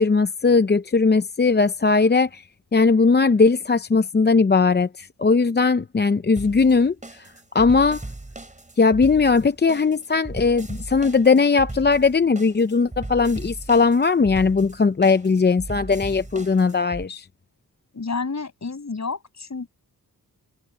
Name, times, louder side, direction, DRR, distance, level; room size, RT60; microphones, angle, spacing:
voice 1, 0.0-2.4 2.7-7.3 7.5-8.0 8.8-17.3, left 4 dB, 30° left, 0.6 m, -19 dB
sound 1, 6.4-17.0, right 2 dB, 20° right, 4.0 m, -37 dB
voice 2, 17.9-19.7, left 4 dB, 50° left, 7.4 m, -30 dB
wide cardioid pair, 95°, 37 cm